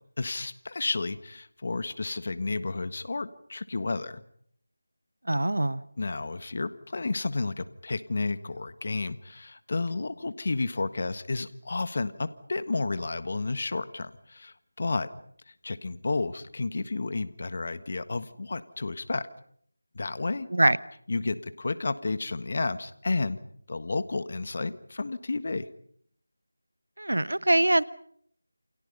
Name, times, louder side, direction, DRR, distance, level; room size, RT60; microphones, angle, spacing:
voice 1, 0.2-4.2 6.0-15.1 15.5-19.3 19.9-20.5 21.1-23.4 23.7-25.7, left 3 dB, 45° left, 14 dB, 1.5 m, -31 dB
voice 2, 5.3-5.8 20.5-20.8 27.0-27.8, right 1 dB, 80° right, 18 dB, 1.1 m, -23 dB
29.0 x 28.5 x 5.5 m, 0.65 s
figure-of-eight pair, 170°, 0 cm